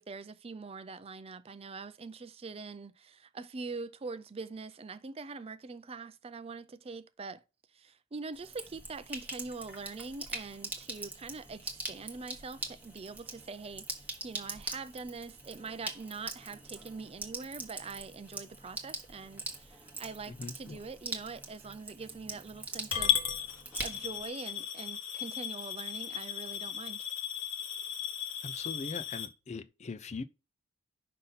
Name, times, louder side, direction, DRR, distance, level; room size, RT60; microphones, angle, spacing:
voice 1, 0.0-7.4 7.7-23.2 23.8-27.1, right 4 dB, 25° right, 0.4 m, -43 dB
Sink (filling or washing), 8.3-24.3, right 2 dB, 10° right, 1.1 m, -43 dB
voice 2, 20.3-20.8 28.4-30.2, left 4 dB, 30° left, 0.4 m, -41 dB
Coin (dropping) / Glass, 22.9-29.3, left 9 dB, 65° left, 1.1 m, -35 dB
5.7 x 5.3 x 4.0 m
head